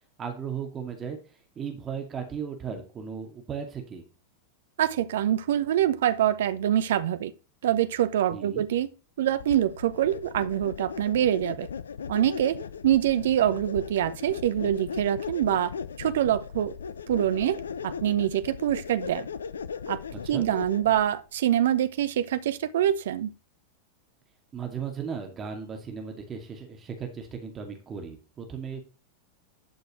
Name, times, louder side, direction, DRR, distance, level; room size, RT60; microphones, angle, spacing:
voice 1, 0.2-1.2 1.6-4.0 8.3-8.6 20.1-20.5 24.5-28.8, right 6 dB, 25° right, 2.4 m, -36 dB
voice 2, 4.8-7.3 7.6-8.9 9.2-11.7 12.1-15.7 16.0-16.8 17.1-19.3 19.9-20.0 20.3-23.3, right 11 dB, 60° right, 0.8 m, -25 dB
sound 1, 9.4-21.1, left 6 dB, 70° left, 0.6 m, -38 dB
12.0 x 6.8 x 3.2 m
figure-of-eight pair, 90°, 0 cm